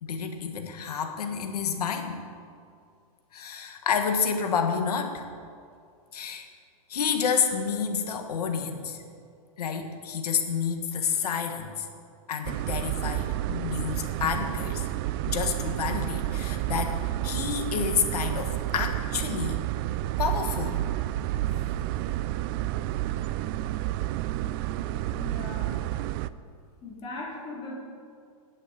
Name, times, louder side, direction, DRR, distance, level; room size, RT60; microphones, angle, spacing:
voice 1, 0.0-2.2 3.3-5.3 6.1-6.5 6.9-9.0 9.6-11.9 12.3-14.9 15.3-17.0 17.2-19.7 20.2-20.8, left 6 dB, 90° left, 5 dB, 1.6 m, -29 dB
sound 1, 12.4-26.3, right 14 dB, 35° right, 0.4 m, -30 dB
voice 2, 24.7-25.8 26.8-27.8, left 2 dB, 25° left, -5 dB, 3.8 m, -39 dB
9.5 x 8.3 x 8.2 m, 2.3 s
hypercardioid pair, 145°, 19 cm